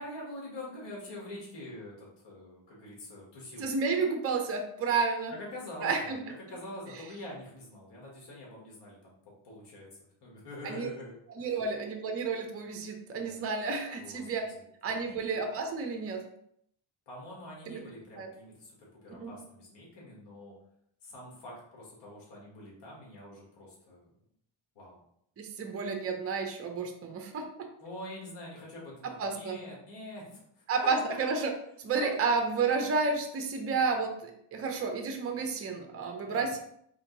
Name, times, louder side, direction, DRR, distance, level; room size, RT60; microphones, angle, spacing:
voice 1, 0.0-3.7 5.3-9.9 10.2-11.6 13.1-13.4 13.9-14.3 14.8-15.1 17.1-20.5 21.0-24.1 24.7-25.0 27.8-30.6 32.0-32.1 36.3-36.5, left 1 dB, 55° left, -4 dB, 1.6 m, -45 dB
voice 2, 3.6-5.3 5.8-6.2 10.6-10.9 11.4-14.4 14.8-16.2 17.7-17.8 18.2-18.3 19.2-19.3 25.4-27.4 29.0-29.6 30.7-31.5 31.8-36.6, right 4 dB, 30° right, 4 dB, 0.6 m, -31 dB
3.7 x 2.8 x 3.9 m, 0.71 s
cardioid pair, 110°, 49 cm